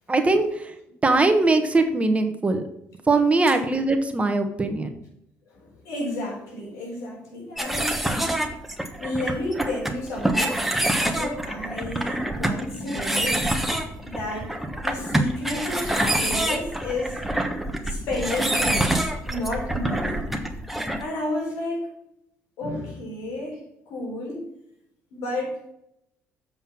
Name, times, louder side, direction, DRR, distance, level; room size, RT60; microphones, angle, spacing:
voice 1, 0.1-0.7 1.0-2.6 3.1-4.9, right 3 dB, 25° right, 7 dB, 1.2 m, -21 dB
voice 2, 5.5-8.0 9.0-13.5 14.0-14.6 14.8-17.2 17.8-20.2 21.0-21.9 22.6-24.5 25.1-25.7, left 1 dB, 75° left, -1 dB, 4.1 m, -31 dB
sound 1, 7.6-21.0, right 1 dB, 5° right, 1.3 m, -26 dB
7.7 x 5.6 x 6.1 m, 0.78 s
supercardioid pair, 80°, 5 cm